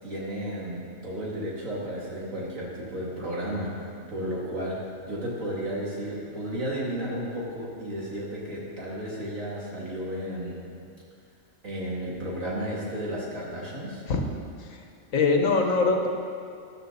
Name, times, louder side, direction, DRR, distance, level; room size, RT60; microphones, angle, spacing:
voice 1, 0.0-3.8 4.1-10.6 11.6-14.0, equal, 90° right, -5 dB, 3.2 m, -33 dB
voice 2, 15.1-16.1, left 3 dB, 80° left, 3 dB, 1.6 m, -23 dB
13.5 x 12.0 x 4.2 m, 2.4 s
omnidirectional pair, 1.3 m